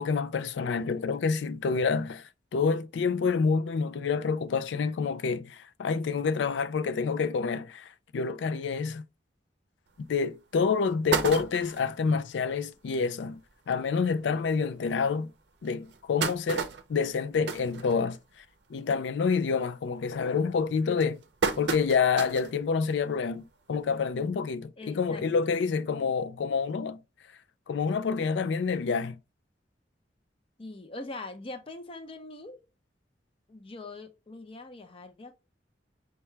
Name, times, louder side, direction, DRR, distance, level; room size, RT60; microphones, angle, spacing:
voice 1, 0.0-9.0 10.0-13.4 13.7-15.3 15.6-18.2 18.7-21.2 21.6-27.0 27.7-29.2, left 5 dB, 80° left, 0.4 m, -28 dB
sound 1, 10.0-10.1 10.6-10.7 10.9-11.9 12.5-12.6 12.9-13.0 13.3-13.5 14.2-14.3 14.8-14.9 15.6-18.5 18.9-19.2 19.5-19.9 20.6-22.6 23.0-23.1 24.3-24.4, right 5 dB, 70° right, 0.6 m, -32 dB
voice 2, 24.8-25.2 30.6-32.6 33.5-35.4, left 2 dB, 30° left, 0.6 m, -42 dB
5.6 x 2.3 x 3.1 m
head